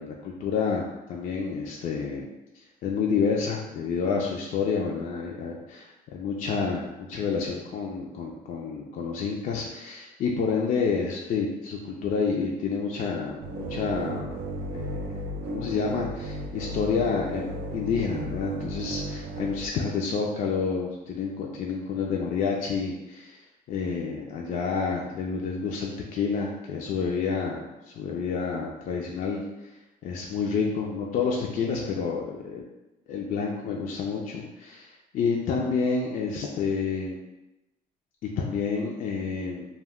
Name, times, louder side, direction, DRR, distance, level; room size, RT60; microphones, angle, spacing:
voice 1, 0.0-2.3 2.8-14.4 14.7-15.1 15.5-23.4 23.7-29.7 30.0-32.6 33.1-37.2 38.4-39.7, left 5 dB, 50° left, -1 dB, 0.4 m, -29 dB
sound 1, 13.4-19.7, right 1 dB, 85° right, 0.4 m, -35 dB
2.2 x 2.2 x 3.5 m, 0.98 s
cardioid pair, 110°, 17 cm